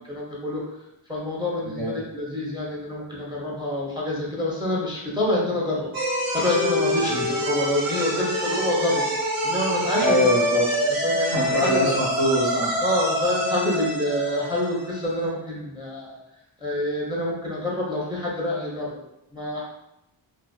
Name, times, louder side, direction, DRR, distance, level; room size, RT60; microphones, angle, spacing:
voice 1, 0.1-0.6 1.1-5.9 6.3-9.0 9.4-10.2 11.0-11.9 12.8-16.2 16.6-19.0 19.3-19.6, left 1 dB, 10° right, -5 dB, 0.5 m, -27 dB
sound 1, 5.9-15.2, equal, 45° right, 0.6 m, -26 dB
voice 2, 10.0-10.6 11.3-12.7, left 1 dB, 65° right, -8 dB, 1.0 m, -23 dB
2.4 x 2.3 x 2.3 m, 0.85 s
wide cardioid pair, 100°, 49 cm